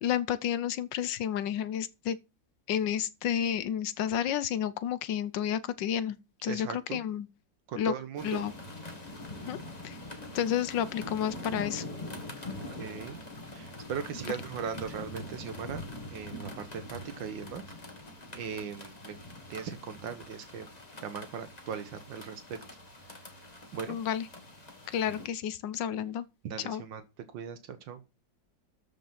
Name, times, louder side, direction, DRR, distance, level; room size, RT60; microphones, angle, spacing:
voice 1, 0.0-2.2 2.7-6.2 6.4-7.3 7.7-7.9 8.2-8.5 9.5-9.6 9.8-10.0 10.3-11.8 23.9-24.3 24.9-26.2 26.6-26.8, left 9 dB, 75° left, 1.4 m, -31 dB
voice 2, 6.4-7.0 7.7-8.4 12.8-13.2 13.5-15.8 16.1-17.6 18.3-19.2 19.5-20.7 21.0-22.6 23.7-24.0 24.8-24.9 26.4-27.0 27.3-28.0, right 7 dB, 80° right, 1.7 m, -38 dB
sound 1, 8.2-25.3, left 1 dB, 20° left, 1.7 m, -44 dB
13.5 x 5.3 x 5.8 m
omnidirectional pair, 2.0 m